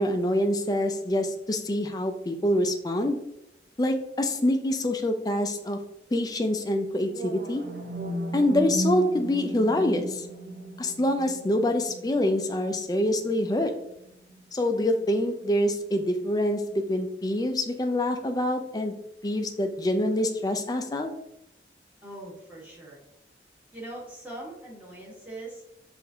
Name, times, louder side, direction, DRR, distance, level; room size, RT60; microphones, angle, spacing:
voice 1, 0.0-3.2 3.8-5.8 6.1-7.6 8.3-10.3 10.8-13.7 14.5-18.9 19.2-21.1, left 1 dB, 20° left, 5 dB, 0.4 m, -26 dB
sound 1, 7.1-15.1, right 1 dB, 50° right, 0.5 m, -36 dB
voice 2, 22.0-23.0 23.7-25.7, right 1 dB, 10° right, -6 dB, 1.4 m, -41 dB
5.9 x 2.6 x 2.8 m, 0.81 s
head